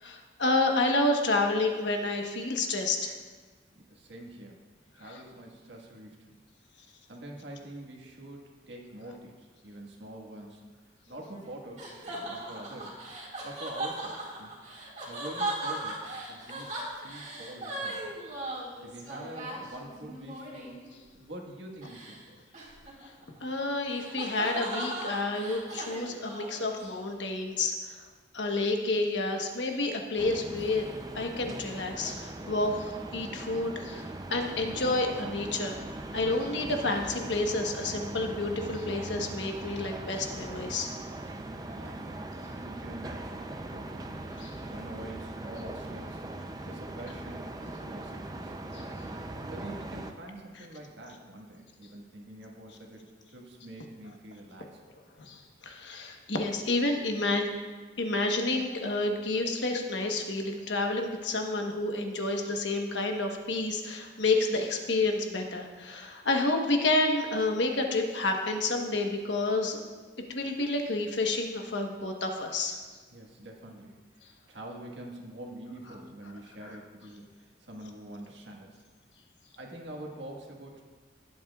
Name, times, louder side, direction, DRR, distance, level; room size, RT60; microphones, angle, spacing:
voice 1, 0.0-3.1 23.4-28.0 28.3-30.9 31.1-35.8 36.1-40.9 44.4-44.5 48.7-48.8 55.2-57.5 58.0-69.8 70.3-72.8 76.6-76.7, left 2 dB, 70° left, 3 dB, 1.1 m, -29 dB
voice 2, 3.7-4.6 4.9-6.4 7.1-10.7 11.1-13.0 13.4-14.6 15.1-18.1 18.8-20.8 21.1-22.4 41.3-42.2 42.5-44.1 44.7-46.3 46.7-48.5 49.3-53.0 53.3-54.8 73.1-78.8 79.5-80.8, right 1 dB, 75° right, 0 dB, 1.6 m, -45 dB
sound 1, 11.1-20.9 21.8-22.2 22.5-27.1, right 1 dB, 40° right, 2.0 m, -38 dB
sound 2, 30.2-50.1, right 2 dB, 20° right, 0.5 m, -40 dB
18.5 x 7.8 x 2.4 m, 1.4 s
head